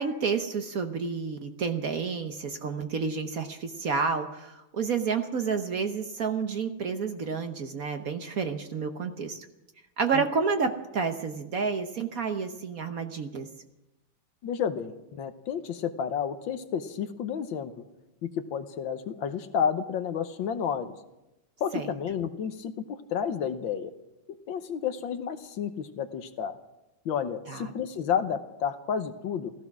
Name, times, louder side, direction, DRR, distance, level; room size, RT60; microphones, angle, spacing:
voice 1, 0.0-9.5 10.0-13.5 21.7-21.9 27.5-27.7, right 5 dB, 50° right, 6 dB, 1.2 m, -30 dB
voice 2, 14.4-17.8 18.2-21.0 21.6-23.9 24.5-26.6 27.0-29.5, left 7 dB, 75° left, 9 dB, 1.7 m, -31 dB
15.5 x 15.5 x 6.1 m, 0.94 s
omnidirectional pair, 2.2 m